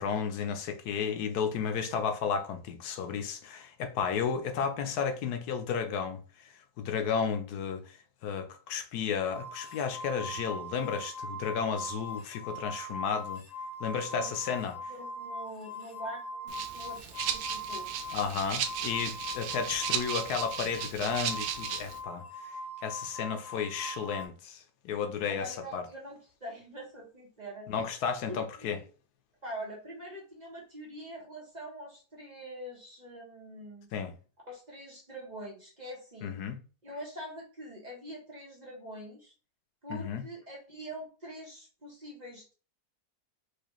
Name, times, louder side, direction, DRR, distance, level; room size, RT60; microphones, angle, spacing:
voice 1, 0.0-6.2 6.8-13.4 13.8-14.8 18.1-22.2 22.8-25.8 27.7-28.8 33.9-34.1 36.2-36.6 39.9-40.2, left 6 dB, 85° left, 1.2 m, -33 dB
sound 1, 9.3-24.2, equal, 30° left, 0.9 m, -41 dB
voice 2, 14.9-17.9 25.3-27.7 28.3-28.9 29.4-33.9 34.4-36.4 36.8-39.3 39.8-42.5, right 1 dB, 30° right, 1.0 m, -44 dB
Rattle (instrument), 16.5-22.0, right 8 dB, 75° right, 1.0 m, -36 dB
4.8 x 2.4 x 3.0 m
omnidirectional pair, 1.6 m